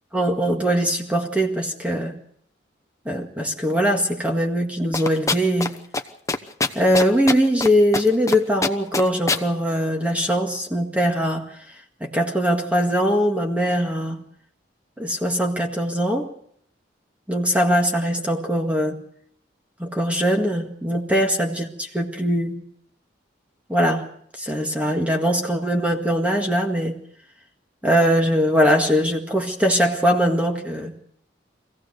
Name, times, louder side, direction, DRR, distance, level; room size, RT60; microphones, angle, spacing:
voice 1, 0.1-2.2 3.1-5.8 6.8-11.5 12.0-14.2 15.0-16.3 17.3-19.0 19.8-22.6 23.7-24.1 24.4-27.0 27.8-30.9, equal, 5° right, 1 dB, 1.9 m, -21 dB
sound 1, 4.9-5.7 5.9-6.0 6.3-7.7 7.9-8.4 8.6-9.4, left 3 dB, 15° left, 0.9 m, -22 dB
25.0 x 16.5 x 6.5 m, 0.66 s
head